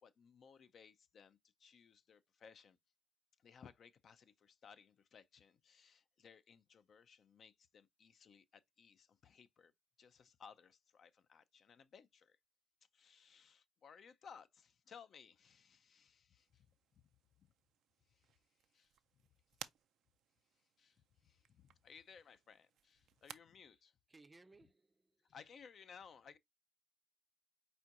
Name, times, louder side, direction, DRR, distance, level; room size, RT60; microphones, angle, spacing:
voice 1, 0.0-2.8 3.4-9.7 10.0-12.4 12.9-16.7 17.4-17.5 18.1-18.3 18.7-18.9 20.8-24.0 25.3-26.4, left 6 dB, 55° left, 0.5 m, -61 dB
sound 1, 16.4-23.4, right 10 dB, 75° right, 0.4 m, -59 dB
voice 2, 24.1-25.3, right 3 dB, 20° right, 0.5 m, -64 dB
4.5 x 4.3 x 2.4 m
cardioid pair, 90°, 0 cm